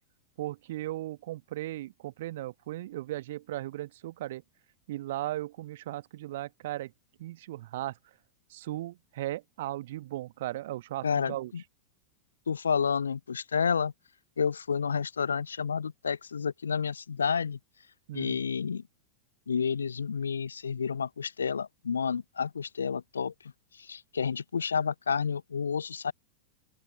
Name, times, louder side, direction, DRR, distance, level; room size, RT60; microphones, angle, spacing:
voice 1, 0.4-4.4 4.9-6.9 7.2-7.9 8.5-11.5 18.1-18.4, right 15 dB, 55° right, 1.4 m, -37 dB
voice 2, 11.0-11.6 12.5-13.9 14.4-17.6 18.1-18.8 19.5-23.3 23.8-26.1, left 6 dB, 70° left, 0.8 m, -30 dB
open air
figure-of-eight pair, 90°, 0 cm